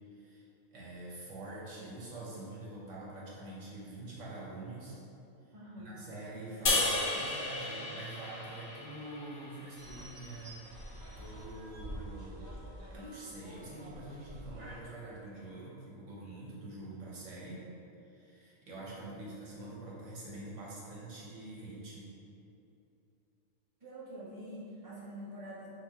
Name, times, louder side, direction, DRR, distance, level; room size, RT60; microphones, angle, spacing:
voice 1, 0.1-0.5 0.7-5.0 5.8-10.6 11.2-12.5 12.9-17.6 18.0-22.1, right 2 dB, 80° right, -6 dB, 1.2 m, -45 dB
voice 2, 5.5-6.1 14.5-14.6 19.0-19.3 23.8-25.7, right 1 dB, 15° right, -10 dB, 1.0 m, -46 dB
sound 1, 6.7-9.9, left 2 dB, 50° left, 0.4 m, -33 dB
sound 2, 9.8-14.8, equal, 45° right, 0.6 m, -47 dB
5.8 x 2.2 x 3.5 m, 2.8 s
omnidirectional pair, 1.3 m